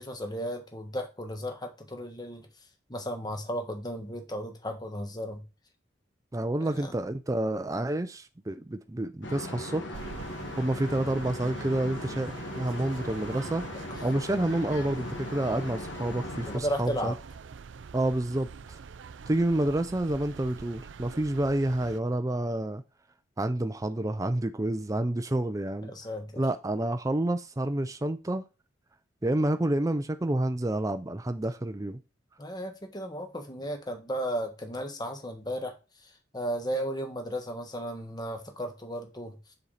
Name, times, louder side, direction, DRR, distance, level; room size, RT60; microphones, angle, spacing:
voice 1, 0.0-2.5 2.9-5.4 6.7-6.9 16.5-17.2 25.9-26.4 32.4-35.7 36.0-39.4, equal, 20° left, 1.5 m, -34 dB
voice 2, 6.3-10.0 10.6-13.6 14.0-17.1 17.9-18.8 19.3-22.8 23.4-25.9 26.4-28.5 29.2-32.0, right 1 dB, 15° right, 0.5 m, -29 dB
sound 1, 9.2-16.6, left 1 dB, 75° left, 1.6 m, -39 dB
sound 2, 9.9-22.0, right 5 dB, 75° right, 0.5 m, -45 dB
7.1 x 6.4 x 4.2 m
head